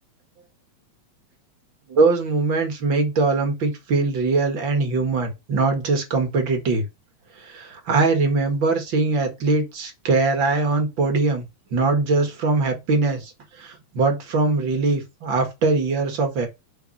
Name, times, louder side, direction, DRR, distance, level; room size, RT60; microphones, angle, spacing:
voice 1, 1.9-6.9 7.4-11.4 11.7-13.3 13.6-16.5, right 3 dB, 45° right, 2.0 m, -22 dB
6.9 x 4.8 x 4.6 m
omnidirectional pair, 3.3 m